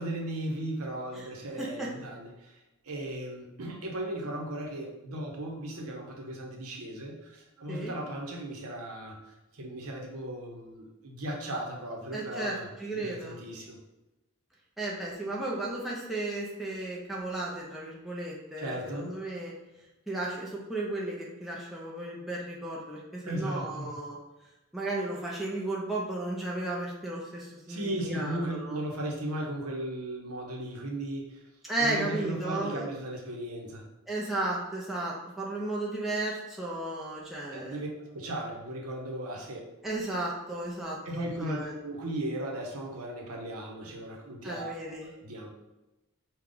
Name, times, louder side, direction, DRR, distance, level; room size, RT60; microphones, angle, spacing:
voice 1, 0.0-13.8 18.6-19.1 23.2-23.9 27.7-31.4 31.8-33.9 37.5-39.7 41.0-45.5, right 1 dB, 85° right, 0 dB, 0.8 m, -36 dB
voice 2, 1.6-1.9 7.7-7.9 12.1-13.4 14.8-19.5 20.1-24.2 24.7-28.8 31.6-32.8 34.1-37.8 39.8-41.0 41.4-41.8 44.4-45.1, right 2 dB, ahead, -5 dB, 0.6 m, -34 dB
4.9 x 2.3 x 3.8 m, 1.0 s
head